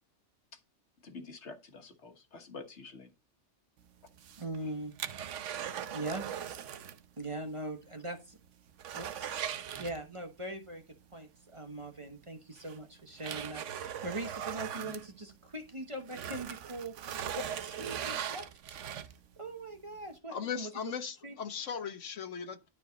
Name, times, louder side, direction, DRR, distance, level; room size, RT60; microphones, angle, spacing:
voice 1, 1.0-3.1, left 4 dB, 65° left, 1.7 m, -48 dB
sound 1, 4.1-7.1 7.3-7.4 7.9-8.0 8.4-10.4 11.8-11.9 12.6-15.7 16.0-19.3 19.9-20.0, right 9 dB, 85° right, 1.1 m, -39 dB
voice 2, 4.4-4.9 5.9-6.2 7.2-8.4 8.9-16.9 17.3-18.8 19.4-20.9 21.2-21.3, right 1 dB, 25° right, 1.2 m, -41 dB
voice 3, 20.3-22.7, left 7 dB, 85° left, 1.4 m, -38 dB
12.0 x 4.9 x 4.0 m
omnidirectional pair, 1.2 m